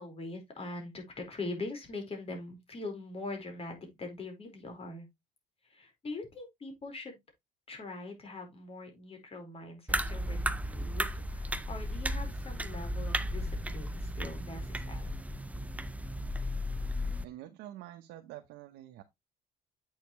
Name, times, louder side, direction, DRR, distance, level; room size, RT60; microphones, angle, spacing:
voice 1, 0.0-5.1 5.6-7.2 7.7-15.1, left 2 dB, 35° left, 4.5 m, -42 dB
sound 1, 9.9-17.3, equal, 10° right, 0.6 m, -34 dB
voice 2, 17.2-19.0, right 13 dB, 90° right, 1.0 m, -47 dB
8.3 x 6.7 x 3.1 m
cardioid pair, 110°, 17 cm